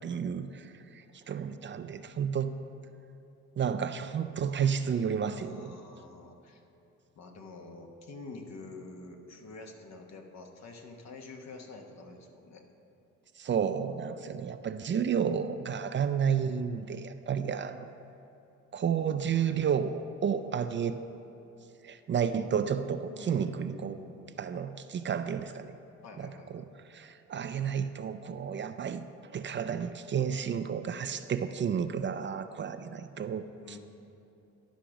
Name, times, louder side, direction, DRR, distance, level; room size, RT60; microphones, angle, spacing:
voice 1, 0.0-2.5 3.6-5.8 13.4-17.9 18.7-21.0 21.8-24.0 24.4-25.8 26.2-26.6 26.9-29.0 29.3-33.8, right 7 dB, 40° right, 10 dB, 0.4 m, -31 dB
voice 2, 5.4-6.6 7.2-12.6 23.2-24.4 26.0-26.5 33.6-33.8, left 3 dB, 60° left, 3 dB, 1.2 m, -47 dB
11.5 x 5.1 x 5.9 m, 3.0 s
cardioid pair, 90°, 30 cm